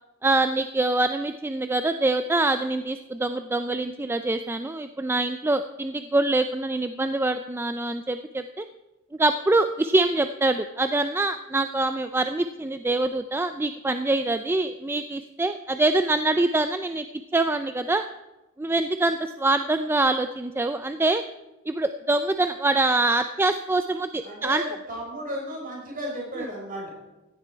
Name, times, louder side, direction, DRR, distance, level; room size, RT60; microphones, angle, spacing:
voice 1, 0.2-8.6 9.1-17.1 17.3-18.0 18.6-21.2 21.7-24.6, right 2 dB, 10° right, 9 dB, 0.3 m, -24 dB
voice 2, 24.2-26.9, equal, 40° right, -2 dB, 5.3 m, -34 dB
15.5 x 10.0 x 4.5 m, 1.0 s
head